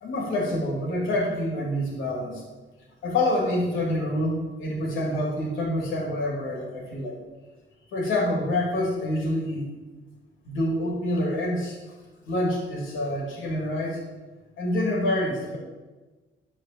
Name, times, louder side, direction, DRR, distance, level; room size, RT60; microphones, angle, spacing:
voice 1, 0.0-2.4 3.0-7.2 7.9-9.7 10.4-11.8 12.2-14.0 14.6-15.6, left 1 dB, 80° left, -1 dB, 2.9 m, -27 dB
9.0 x 4.8 x 7.0 m, 1.2 s
cardioid pair, 90°, 20 cm